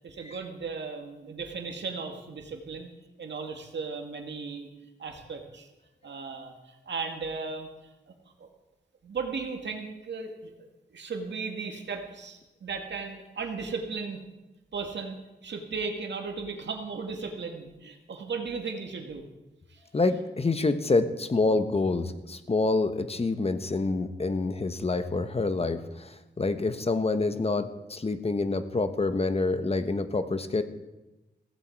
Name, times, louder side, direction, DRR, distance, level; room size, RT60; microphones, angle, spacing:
voice 1, 0.0-2.9 3.2-4.7 5.0-5.7 6.0-7.7 8.1-8.5 9.0-10.5 10.9-14.2 14.7-19.3 19.7-19.8, right 4 dB, 85° right, 3 dB, 2.1 m, -36 dB
voice 2, 19.9-30.6, left 3 dB, 35° left, 10 dB, 1.2 m, -27 dB
16.5 x 15.5 x 4.7 m, 1.0 s
wide cardioid pair, 100°, 18 cm